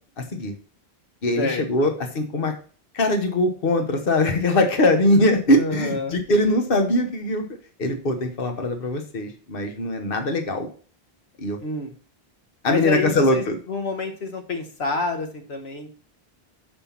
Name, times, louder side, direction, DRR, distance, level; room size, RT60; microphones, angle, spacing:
voice 1, 0.2-0.5 1.2-2.5 2.9-7.4 7.8-10.7 11.4-11.6 12.6-13.6, left 1 dB, 60° left, 5 dB, 1.3 m, -21 dB
voice 2, 1.4-1.9 5.5-6.2 11.6-11.9 12.7-15.9, left 3 dB, 80° left, 4 dB, 1.4 m, -28 dB
6.7 x 5.5 x 5.7 m, 0.42 s
omnidirectional pair, 1.1 m